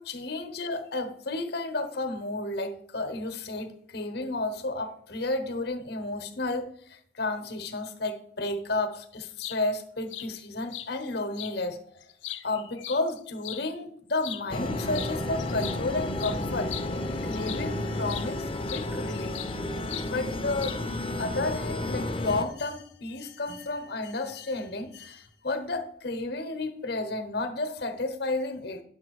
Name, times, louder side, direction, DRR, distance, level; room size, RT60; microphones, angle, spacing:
voice 1, 0.0-12.0 12.4-16.7 17.2-19.4 20.0-20.8 21.2-28.8, left 2 dB, 55° left, 1.1 m, -32 dB
sound 1, 9.4-9.6 10.1-10.3 10.7-10.9 11.3-11.5 12.0-13.6 14.2-14.4 14.9-15.1 15.4-17.7 18.1-18.3 18.7-19.6 19.9-20.1 20.6-21.0, left 13 dB, 75° left, 0.7 m, -39 dB
sound 2, 14.5-22.4, left 1 dB, 30° left, 0.7 m, -32 dB
10.0 x 7.2 x 4.8 m
head